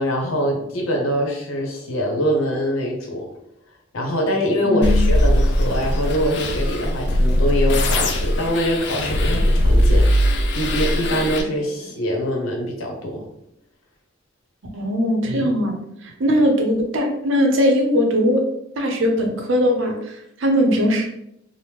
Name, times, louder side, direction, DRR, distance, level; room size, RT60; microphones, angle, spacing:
voice 1, 0.0-3.3 3.9-13.3 15.3-15.5, equal, 80° left, 1 dB, 0.8 m, -24 dB
voice 2, 4.6-5.1 14.7-15.8 16.2-18.4 18.8-19.9 20.4-21.0, equal, 70° right, 2 dB, 0.6 m, -19 dB
sound 1, 4.8-11.4, equal, 55° left, 0.4 m, -19 dB
3.0 x 2.1 x 3.4 m, 0.78 s
head